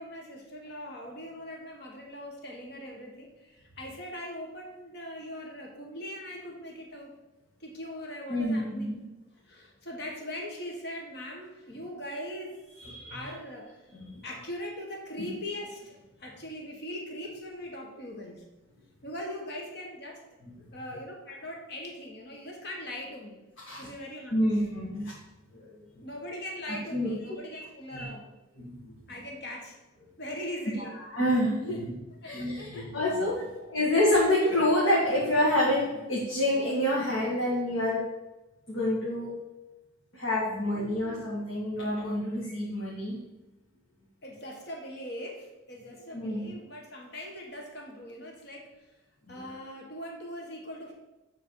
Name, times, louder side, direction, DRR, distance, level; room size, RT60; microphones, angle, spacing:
voice 1, 0.0-7.1 7.6-9.0 9.4-12.6 13.1-13.8 14.2-18.4 19.0-20.2 20.7-23.4 23.8-24.6 26.0-28.4 29.1-29.8 30.2-31.0 31.3-31.8 32.2-33.5 33.7-33.8 40.7-41.3 44.2-48.7 49.3-50.9, left 1 dB, 55° left, 0 dB, 1.5 m, -41 dB
voice 2, 8.3-8.9 12.8-13.2 14.0-14.2 15.2-15.3 23.7-23.9 24.3-25.1 25.7-25.8 26.9-27.6 27.9-28.1 28.6-29.0 30.8-32.0 32.2-38.0 38.7-39.3 40.1-43.2 46.1-46.5 49.3-49.4, left 1 dB, 90° left, -6 dB, 1.9 m, -28 dB
8.8 x 4.2 x 4.8 m, 1.0 s
head